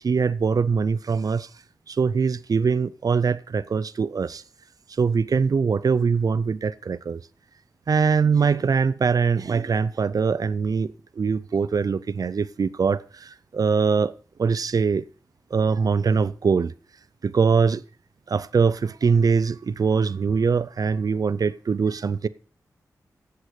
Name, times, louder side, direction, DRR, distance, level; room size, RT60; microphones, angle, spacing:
voice 1, 0.0-1.5 1.9-4.4 5.0-7.2 7.9-14.1 14.4-15.0 15.5-16.7 17.2-17.8 18.3-22.3, right 5 dB, 60° right, 0.6 m, -22 dB
8.1 x 7.9 x 7.6 m
cardioid pair, 50°, 7 cm